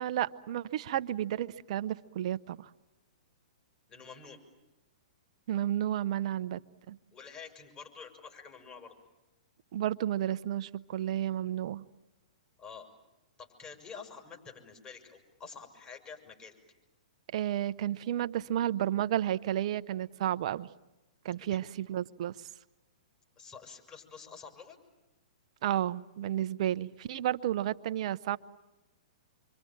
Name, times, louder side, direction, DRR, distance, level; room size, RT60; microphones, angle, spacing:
voice 1, 0.0-2.7 5.5-6.6 6.9-7.0 9.7-11.8 17.3-20.7 21.2-22.4 25.6-28.4, right 11 dB, 55° right, 12 dB, 0.9 m, -32 dB
voice 2, 3.9-4.4 7.1-8.9 12.6-12.9 13.4-16.6 21.4-21.6 23.4-24.8, left 5 dB, 25° left, 2 dB, 6.0 m, -48 dB
26.5 x 24.5 x 8.8 m, 1.0 s
hypercardioid pair, 120°, 4 cm